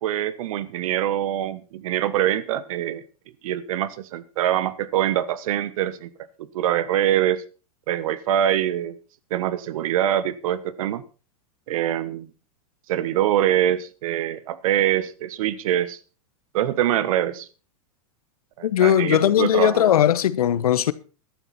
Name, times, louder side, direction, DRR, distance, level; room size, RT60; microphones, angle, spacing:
voice 1, 0.0-3.0 3.4-6.1 6.5-7.4 7.9-9.0 9.3-11.0 11.7-12.3 12.9-16.0 16.5-17.5 18.6-19.9, right 11 dB, 70° right, 1.2 m, -24 dB
voice 2, 18.6-20.9, left 10 dB, 85° left, 1.0 m, -19 dB
14.0 x 12.0 x 4.3 m
hypercardioid pair, 115°, 19 cm